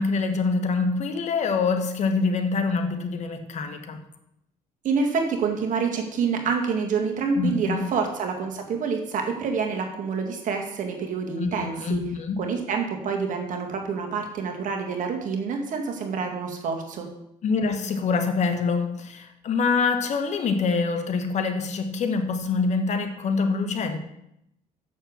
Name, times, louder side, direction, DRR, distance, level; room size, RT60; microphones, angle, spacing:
voice 1, 0.0-4.0 7.4-7.9 11.4-12.4 17.4-24.0, left 4 dB, 55° left, 1.3 m, -25 dB
voice 2, 4.8-12.0 12.4-17.1, right 5 dB, 60° right, 2.1 m, -27 dB
7.3 x 6.8 x 7.1 m
cardioid pair, 105°, 15 cm